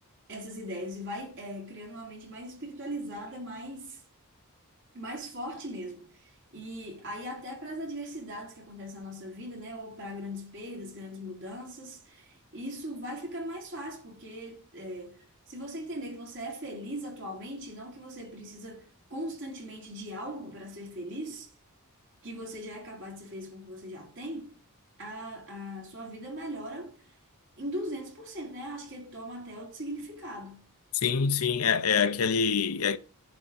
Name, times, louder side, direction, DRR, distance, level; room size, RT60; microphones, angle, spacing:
voice 1, 0.3-4.0 4.9-21.5 22.2-24.6 25.0-27.1 27.6-30.7, equal, 60° right, 3.3 m, -39 dB
voice 2, 31.0-33.0, left 6 dB, 75° left, 0.7 m, -25 dB
10.5 x 4.2 x 7.4 m
head